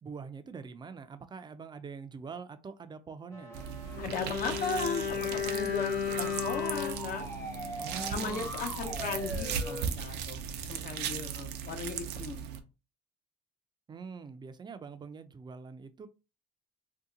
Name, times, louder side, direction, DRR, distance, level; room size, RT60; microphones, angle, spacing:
voice 1, 0.0-3.7 7.8-8.5 13.9-16.1, right 5 dB, 25° right, 0.4 m, -44 dB
sound 1, 3.3-9.8, equal, 15° left, 0.8 m, -42 dB
sound 2, 3.5-12.6, right 7 dB, 90° right, 0.5 m, -38 dB
Bowed string instrument, 3.9-8.3 8.6-8.8, left 8 dB, 85° left, 0.6 m, -35 dB
voice 2, 4.0-7.3 8.1-12.4, left 4 dB, 55° left, 0.8 m, -37 dB
2.8 x 2.2 x 3.7 m
cardioid pair, 110°, 17 cm